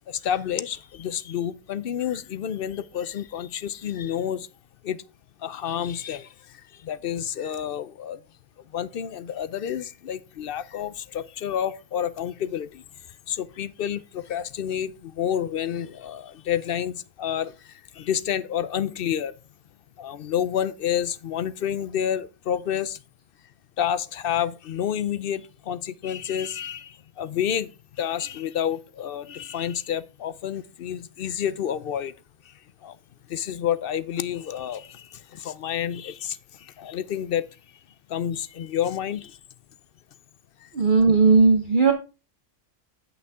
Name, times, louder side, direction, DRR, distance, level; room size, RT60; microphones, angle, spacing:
voice 1, 0.1-4.5 4.8-5.0 5.4-8.2 8.6-12.8 13.3-19.3 20.0-23.0 23.8-27.7 28.0-32.1 32.4-32.5 32.8-33.0 33.3-37.5 38.1-39.4 40.6-40.7, left 9 dB, 60° left, 0.7 m, -29 dB
voice 2, 40.7-41.9, right 4 dB, 45° right, 1.0 m, -17 dB
9.0 x 8.2 x 3.5 m
omnidirectional pair, 1.3 m